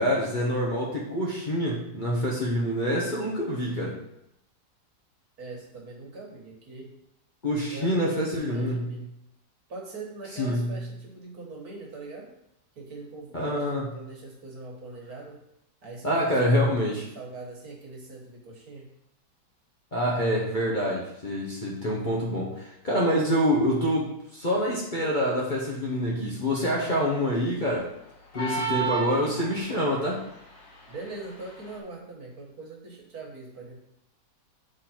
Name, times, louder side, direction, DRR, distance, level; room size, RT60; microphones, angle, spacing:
voice 1, 0.0-4.0 7.4-8.9 10.4-10.7 13.3-13.8 16.0-17.1 19.9-27.9 28.3-30.2, equal, 30° left, -4 dB, 1.1 m, -26 dB
voice 2, 5.4-6.9 7.7-9.1 9.7-12.3 12.8-15.4 15.8-16.8 17.2-18.9 30.9-33.8, right 3 dB, 60° right, -2 dB, 1.9 m, -42 dB
sound 1, 28.3-29.8, right 5 dB, 50° left, 1.5 m, -30 dB
7.4 x 3.9 x 4.4 m, 0.80 s
omnidirectional pair, 1.9 m